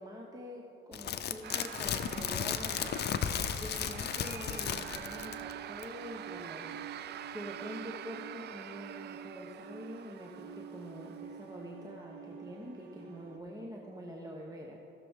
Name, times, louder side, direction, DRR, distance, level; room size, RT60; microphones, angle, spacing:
voice 1, 0.0-14.8, equal, 20° right, 0 dB, 1.0 m, -46 dB
sound 1, 0.9-5.5 5.8-5.9, left 8 dB, 55° left, 0.5 m, -34 dB
sound 2, 1.4-11.5, right 11 dB, 60° right, 0.4 m, -46 dB
sound 3, 4.5-13.4, right 7 dB, 80° right, 1.0 m, -49 dB
16.5 x 6.7 x 3.6 m, 3.0 s
cardioid pair, 90°, 20 cm